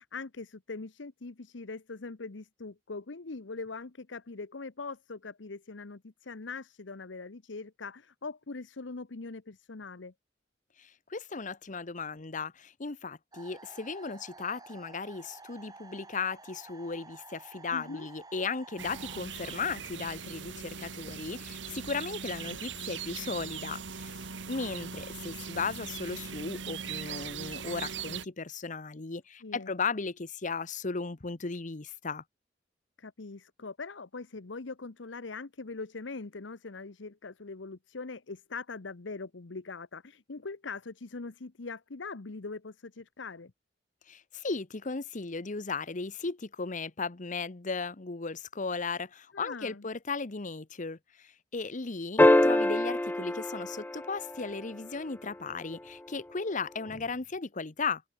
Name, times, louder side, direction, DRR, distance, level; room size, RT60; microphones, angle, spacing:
voice 1, 0.0-10.1 17.7-18.1 29.4-29.8 33.0-43.5 49.3-49.8, left 3 dB, 85° left, 1.0 m, -42 dB
voice 2, 10.8-32.2 44.1-58.0, left 4 dB, 45° left, 1.0 m, -36 dB
sound 1, 13.3-19.2, right 3 dB, 20° right, 4.3 m, -51 dB
sound 2, 18.8-28.3, right 6 dB, 80° right, 1.8 m, -40 dB
sound 3, 52.2-54.7 56.9-57.0, left 1 dB, 10° left, 0.4 m, -24 dB
open air
head